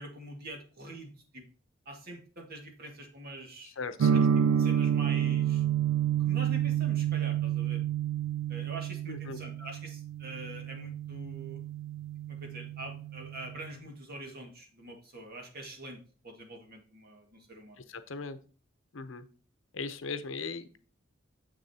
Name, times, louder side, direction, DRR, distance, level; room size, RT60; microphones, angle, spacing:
voice 1, 0.0-1.5 1.9-3.7 4.1-5.6 6.2-7.8 8.5-11.6 12.3-17.8, right 1 dB, 50° right, 2 dB, 1.9 m, -45 dB
voice 2, 3.8-4.3 9.1-9.4 17.8-18.4 18.9-19.2 19.7-20.8, left 4 dB, 75° left, 11 dB, 0.8 m, -38 dB
sound 1, 4.0-13.8, right 9 dB, 85° right, 0.3 m, -29 dB
6.8 x 6.5 x 2.8 m, 0.38 s
head